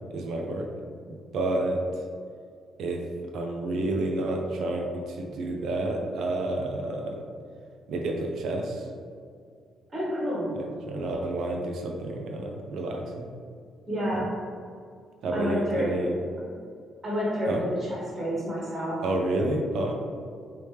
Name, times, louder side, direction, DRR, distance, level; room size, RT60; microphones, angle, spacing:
voice 1, 0.1-0.7 1.3-1.8 2.8-3.0 3.3-7.2 7.9-8.9 10.5-13.3 15.2-16.1 17.5-17.6 19.0-19.9, right 2 dB, 75° right, 2 dB, 0.4 m, -29 dB
voice 2, 9.9-10.5 13.9-14.3 15.3-15.9 16.4-16.5 17.0-19.0, equal, 35° right, -6 dB, 1.1 m, -29 dB
3.3 x 2.8 x 3.2 m, 2.2 s
cardioid pair, 90°, 0 cm